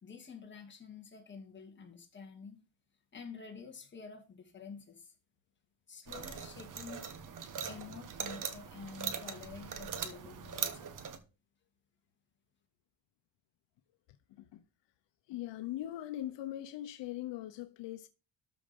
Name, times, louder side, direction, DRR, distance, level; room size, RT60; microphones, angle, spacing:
voice 1, 0.0-2.6 3.1-5.1 5.9-7.1 7.7-10.9, left 5 dB, 25° left, 2.5 m, -49 dB
sound 1, 6.1-11.2, right 7 dB, 45° right, 1.4 m, -41 dB
voice 2, 15.3-18.1, left 13 dB, 75° left, 1.0 m, -40 dB
13.0 x 5.0 x 5.5 m
cardioid pair, 155°, 43 cm